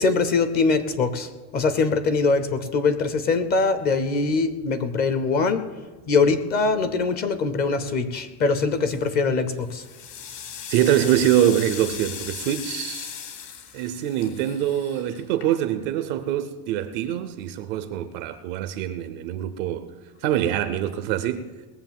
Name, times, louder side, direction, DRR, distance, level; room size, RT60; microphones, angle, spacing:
voice 1, 0.0-5.6 6.1-9.8, left 4 dB, 20° left, 0.5 m, -22 dB
sound 1, 8.7-9.1 9.6-15.9, left 8 dB, 75° left, 3.3 m, -38 dB
voice 2, 10.7-13.1 13.7-19.9 20.2-21.5, right 11 dB, 35° right, 0.4 m, -24 dB
19.5 x 7.4 x 7.3 m
supercardioid pair, 170°, 47 cm